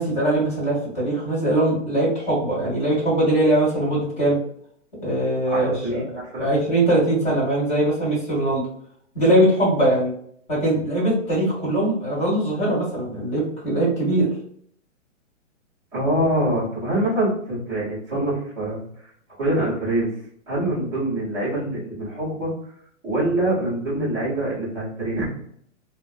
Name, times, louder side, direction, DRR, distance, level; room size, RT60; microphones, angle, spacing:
voice 1, 0.0-4.4 5.0-6.0 6.4-8.6 9.1-10.1 10.5-14.3, right 1 dB, 20° left, -5 dB, 1.4 m, -21 dB
voice 2, 5.5-6.6 15.9-18.8 19.4-20.1 20.5-22.5 23.0-25.2, right 1 dB, 5° right, -12 dB, 0.5 m, -24 dB
2.8 x 2.0 x 2.2 m, 0.64 s
hypercardioid pair, 160°, 38 cm